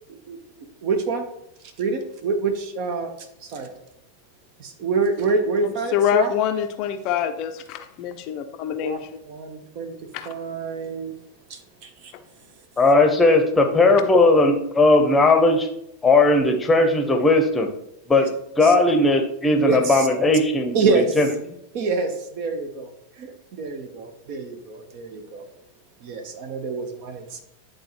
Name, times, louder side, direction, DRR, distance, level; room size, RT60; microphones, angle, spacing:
voice 1, 0.8-1.3 1.8-3.1 3.5-3.7 4.6-6.3 8.8-9.9 10.2-11.1 11.5-12.1 18.6-18.7 19.6-20.1 20.7-21.2 21.7-22.9 23.2-25.4 26.0-27.4, right 4 dB, 45° right, 6 dB, 0.9 m, -26 dB
voice 2, 5.9-9.0 10.1-10.3, left 9 dB, 40° left, 7 dB, 0.5 m, -25 dB
voice 3, 12.8-15.7 16.0-17.7 18.1-18.3 18.6-21.3, left 2 dB, 10° left, 4 dB, 0.9 m, -17 dB
10.0 x 3.8 x 3.0 m, 0.79 s
figure-of-eight pair, 90°, 0 cm